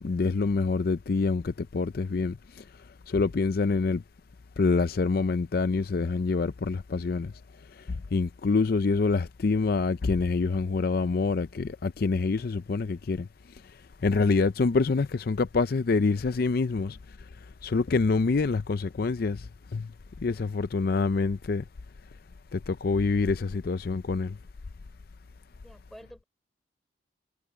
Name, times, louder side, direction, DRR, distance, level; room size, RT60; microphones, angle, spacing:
voice 1, 0.0-2.6 3.1-4.0 4.6-7.3 7.7-13.3 13.5-17.2 17.6-19.9 20.2-21.6 22.5-24.4, left 4 dB, 55° left, 0.5 m, -26 dB
voice 2, 25.5-26.2, equal, ahead, 4.0 m, -49 dB
head